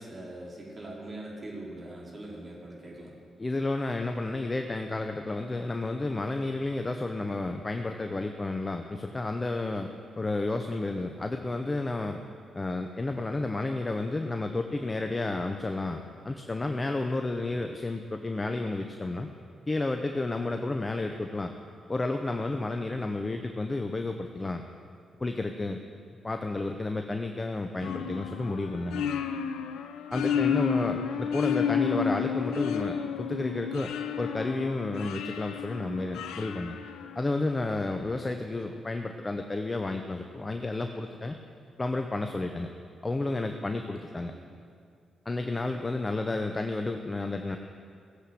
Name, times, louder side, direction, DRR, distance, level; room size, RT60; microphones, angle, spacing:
voice 1, 0.0-3.1 17.5-17.7 30.3-30.6 38.0-38.3 44.2-44.5, right 1 dB, 45° right, -3 dB, 4.8 m, -43 dB
voice 2, 3.4-12.2 12.5-19.3 19.7-21.5 21.9-24.6 25.2-25.8 26.2-29.0 30.1-33.9 34.2-36.8 37.1-41.4 41.8-42.7 43.0-44.3 45.2-47.6, left 2 dB, 30° left, 5 dB, 1.0 m, -31 dB
sound 1, 27.8-37.6, left 7 dB, 80° left, 0.7 m, -31 dB
16.5 x 8.1 x 7.9 m, 2.3 s
hypercardioid pair, 40°, 0 cm